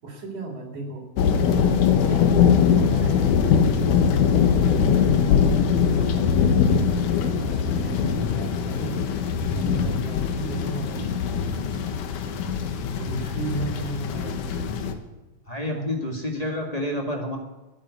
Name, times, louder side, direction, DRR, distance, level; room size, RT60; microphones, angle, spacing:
voice 1, 0.0-1.1 2.0-12.0 13.0-14.9 15.6-15.9, right 2 dB, 65° right, 0 dB, 5.2 m, -35 dB
sound 1, 1.2-14.9, left 7 dB, 80° left, 2.7 m, -22 dB
voice 2, 15.5-17.4, left 1 dB, 15° left, 0 dB, 1.4 m, -29 dB
12.5 x 9.7 x 9.5 m, 1.1 s
omnidirectional pair, 3.6 m